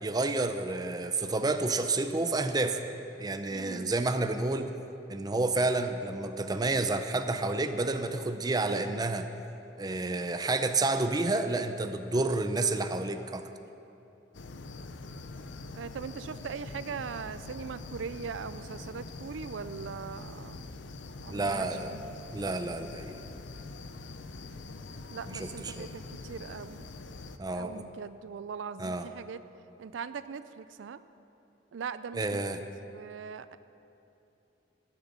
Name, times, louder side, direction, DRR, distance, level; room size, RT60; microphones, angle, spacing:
voice 1, 0.0-2.8 3.2-4.7 5.1-9.3 9.8-13.5 21.3-21.9 22.3-23.2 25.3-25.9 27.4-27.8 28.8-29.1 32.1-32.6, right 2 dB, 20° right, 8 dB, 0.5 m, -30 dB
voice 2, 3.5-4.0 15.7-20.7 21.2-21.7 21.9-22.2 25.1-26.9 27.5-29.4 29.8-31.0 31.7-33.6, right 6 dB, 85° right, 13 dB, 0.4 m, -40 dB
sound 1, 14.3-27.4, left 3 dB, 75° left, 0.6 m, -44 dB
15.5 x 7.1 x 6.7 m, 2.8 s
head